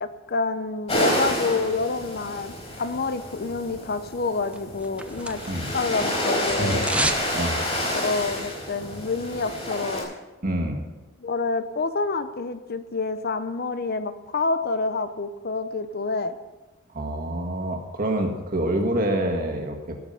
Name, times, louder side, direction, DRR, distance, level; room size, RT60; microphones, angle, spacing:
voice 1, 0.0-5.4 5.7-6.9 7.9-10.1 11.2-16.3, left 3 dB, 50° left, 11 dB, 0.8 m, -28 dB
sound 1, 0.9-10.0, left 1 dB, 35° left, 4.7 m, -29 dB
sound 2, 4.5-5.8 6.0-7.3 7.6-7.7, right 2 dB, 5° right, 0.7 m, -29 dB
voice 2, 6.6-7.8 10.4-10.8 16.9-20.0, right 1 dB, 45° right, 3 dB, 1.8 m, -27 dB
17.0 x 7.0 x 5.7 m, 1.1 s
head